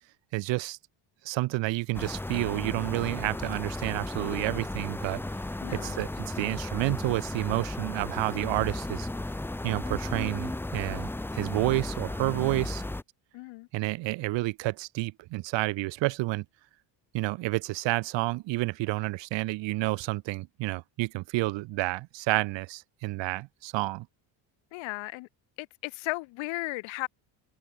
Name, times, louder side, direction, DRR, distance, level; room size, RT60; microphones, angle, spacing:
voice 1, 0.3-0.8 1.2-5.2 5.7-9.1 9.6-12.8 13.7-16.4 17.1-24.1, right 20 dB, 75° right, 1.6 m, -30 dB
sound 1, 1.9-13.0, left 2 dB, 5° left, 0.9 m, -35 dB
voice 2, 5.6-6.1 13.3-13.7 24.7-25.3 25.6-27.1, left 23 dB, 90° left, 5.2 m, -35 dB
open air
cardioid pair, 145°, 45 cm